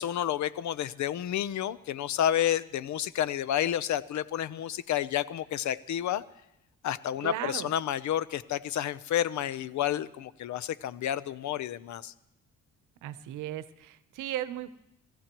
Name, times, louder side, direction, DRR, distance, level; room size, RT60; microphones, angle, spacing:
voice 1, 0.0-6.2 6.8-12.1, left 11 dB, 70° left, 16 dB, 0.8 m, -30 dB
voice 2, 7.2-7.7 13.0-14.7, right 13 dB, 90° right, 14 dB, 0.9 m, -36 dB
25.0 x 14.5 x 3.0 m, 0.85 s
cardioid pair, 90°, 30 cm